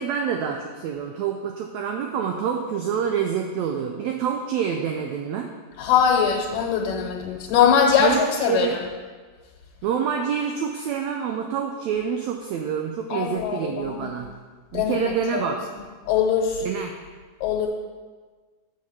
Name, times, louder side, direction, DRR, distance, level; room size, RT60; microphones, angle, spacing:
voice 1, 0.0-5.5 8.0-8.8 9.8-14.3 14.7-15.6 16.6-16.9, right 7 dB, 80° right, 3 dB, 1.6 m, -27 dB
voice 2, 5.8-8.7 13.1-14.1 14.7-15.5 16.1-16.6 17.4-17.7, left 7 dB, 90° left, 0 dB, 2.5 m, -22 dB
6.4 x 5.5 x 7.0 m, 1.4 s
omnidirectional pair, 3.7 m